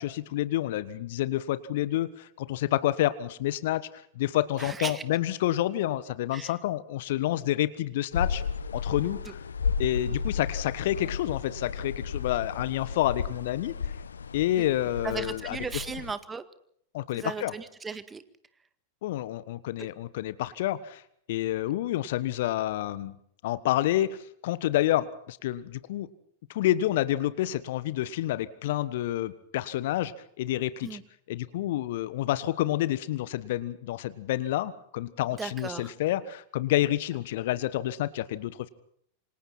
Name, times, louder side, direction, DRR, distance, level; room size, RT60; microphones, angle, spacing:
voice 1, 0.0-3.9 4.1-8.4 8.7-9.4 9.8-13.8 14.3-15.6 16.9-17.5 19.0-21.0 21.3-23.1 23.4-26.1 26.5-31.0 31.3-38.7, left 14 dB, 55° left, 17 dB, 1.3 m, -29 dB
voice 2, 4.6-5.0 6.3-6.5 15.0-16.4 17.1-18.2 30.8-31.0 35.4-35.9, right 5 dB, 15° right, 13 dB, 1.8 m, -36 dB
sound 1, 8.1-16.1, left 6 dB, 70° left, 1.1 m, -33 dB
28.0 x 25.5 x 4.3 m, 0.66 s
figure-of-eight pair, 90°, 0 cm